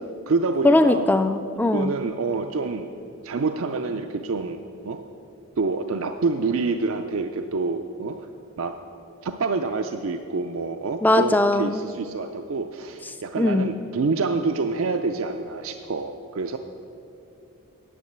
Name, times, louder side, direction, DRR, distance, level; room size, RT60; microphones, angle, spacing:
voice 1, 0.0-1.1 1.6-2.9 3.2-4.6 4.8-5.0 5.6-8.3 8.6-8.8 9.2-16.6, right 4 dB, 70° right, 7 dB, 0.5 m, -27 dB
voice 2, 0.6-1.9 11.0-11.8 13.4-13.7, left 2 dB, 10° left, 9 dB, 0.3 m, -20 dB
10.0 x 7.4 x 7.9 m, 2.7 s
head